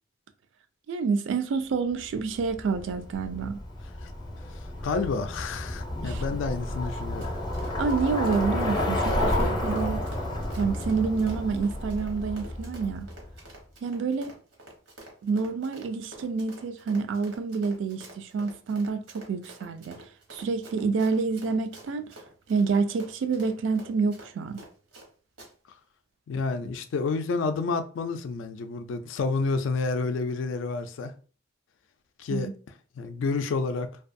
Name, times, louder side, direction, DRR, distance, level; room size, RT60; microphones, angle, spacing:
voice 1, 0.9-3.6 6.0-6.2 7.8-10.0 10.5-13.1 13.8-14.3 15.2-20.0 20.3-22.1 22.5-24.6 32.3-32.5, right 5 dB, 70° right, 0.3 m, -28 dB
Bicycle, 2.4-13.3, left 1 dB, 25° left, 0.5 m, -31 dB
voice 2, 4.8-7.3 26.3-31.1 32.2-32.5 33.0-33.9, left 4 dB, 80° left, 0.3 m, -29 dB
Run, 7.0-25.1 25.4-25.5, right 1 dB, 90° right, 1.0 m, -48 dB
2.5 x 2.3 x 2.5 m
head